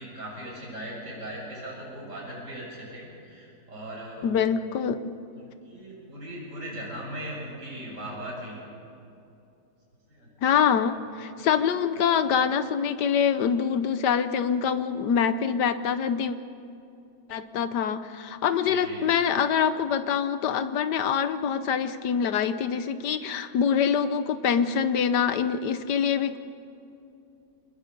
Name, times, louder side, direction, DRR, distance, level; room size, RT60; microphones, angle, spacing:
voice 1, 0.0-4.3 5.3-8.6 10.1-10.5 11.9-12.0 18.6-19.1, right 1 dB, 40° right, -4 dB, 7.4 m, -39 dB
voice 2, 4.2-5.0 10.4-16.4 17.3-26.4, left 7 dB, 70° left, 11 dB, 1.4 m, -25 dB
26.5 x 21.0 x 5.4 m, 2.7 s
omnidirectional pair, 2.0 m